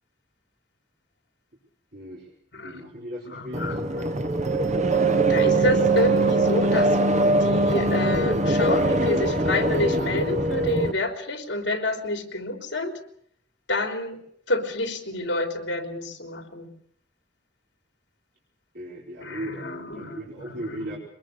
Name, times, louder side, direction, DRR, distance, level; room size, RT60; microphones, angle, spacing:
voice 1, 1.9-2.3 2.6-3.7 18.7-21.0, equal, 55° right, -4 dB, 4.7 m, -37 dB
voice 2, 3.3-4.1 5.3-7.0 7.4-13.0 13.7-14.2 14.5-16.7 19.2-21.0, left 2 dB, 70° left, 5 dB, 3.4 m, -28 dB
sound 1, 3.5-10.9, right 2 dB, 40° right, 1.4 m, -22 dB
23.5 x 21.0 x 6.7 m, 0.68 s
head